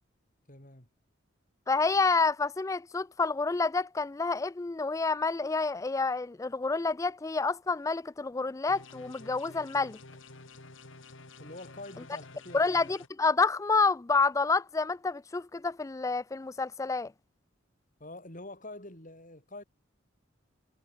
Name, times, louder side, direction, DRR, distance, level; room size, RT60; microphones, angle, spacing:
voice 1, 0.5-0.9 11.4-12.7 18.0-19.6, left 2 dB, 40° left, 8.0 m, -46 dB
voice 2, 1.7-10.0 12.5-17.1, left 4 dB, 15° left, 0.3 m, -28 dB
sound 1, 8.7-13.1, left 3 dB, 70° left, 2.9 m, -50 dB
head